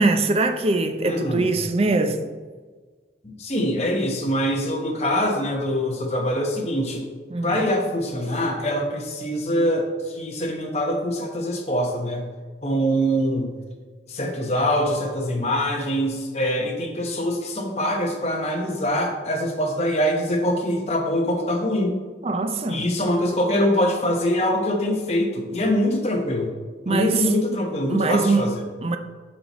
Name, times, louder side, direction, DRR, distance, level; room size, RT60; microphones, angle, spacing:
voice 1, 0.0-2.3 7.3-7.6 22.2-22.9 26.9-27.3 27.9-29.0, right 3 dB, 30° right, 0.4 m, -22 dB
voice 2, 1.0-1.5 3.2-7.0 7.4-12.2 12.6-13.5 14.1-22.0 22.7-26.5 26.9-28.6, equal, 35° left, 1.1 m, -24 dB
8.6 x 5.5 x 3.1 m
head